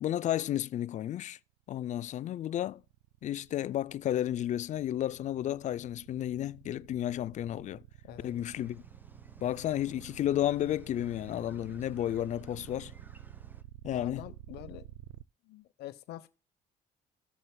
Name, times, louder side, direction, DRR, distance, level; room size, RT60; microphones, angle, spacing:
voice 1, 0.0-1.4 1.7-2.8 3.2-7.8 8.2-8.8 9.4-12.9 13.8-14.2, left 12 dB, 45° left, 0.4 m, -32 dB
sound 1, 2.3-15.2, right 16 dB, 85° right, 0.4 m, -51 dB
sound 2, 8.2-13.6, right 1 dB, 10° right, 0.7 m, -57 dB
voice 2, 13.9-14.9 15.4-16.3, left 14 dB, 75° left, 0.8 m, -45 dB
15.0 x 6.6 x 2.2 m
cardioid pair, 110°, 17 cm